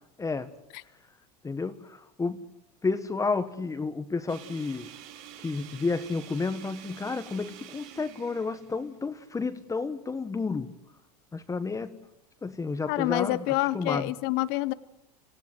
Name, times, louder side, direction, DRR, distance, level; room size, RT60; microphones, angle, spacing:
voice 1, 0.2-0.5 1.4-2.4 2.8-4.9 5.4-10.7 11.3-11.9 12.4-14.1, left 4 dB, 15° left, 10 dB, 1.3 m, -31 dB
sound 1, 4.3-9.5, right 11 dB, 65° right, 2.5 m, -48 dB
voice 2, 12.9-14.7, left 18 dB, 55° left, 17 dB, 0.8 m, -27 dB
27.0 x 16.0 x 7.9 m, 0.86 s
hypercardioid pair, 105°, 20 cm